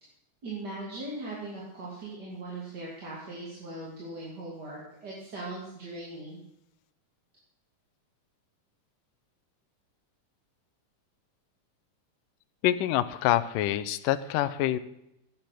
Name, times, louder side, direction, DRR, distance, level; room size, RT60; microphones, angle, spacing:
voice 1, 0.4-6.4, right 2 dB, 30° right, -5 dB, 2.9 m, -39 dB
voice 2, 12.6-14.8, left 13 dB, 80° left, 12 dB, 2.3 m, -26 dB
15.0 x 8.8 x 5.9 m, 0.83 s
omnidirectional pair, 3.8 m